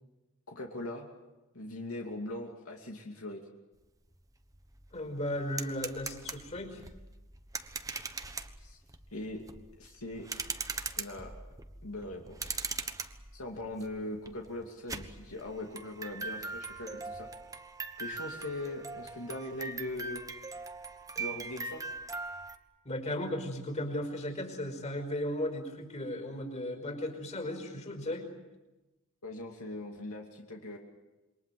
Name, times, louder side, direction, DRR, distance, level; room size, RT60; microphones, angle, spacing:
voice 1, 0.5-1.1 1.5-3.4 8.6-8.8 9.1-9.4 9.8-10.3 11.0-11.3 11.8-12.8 13.3-17.3 18.0-20.2 21.2-21.9 29.2-30.8, left 1 dB, 70° left, 1 dB, 2.8 m, -40 dB
sound 1, 4.1-4.2 4.5-22.6, right 4 dB, 15° right, 1.3 m, -41 dB
voice 2, 4.9-6.8 22.9-28.3, left 1 dB, 30° left, 6 dB, 5.2 m, -36 dB
27.5 x 23.5 x 7.8 m, 1.1 s
head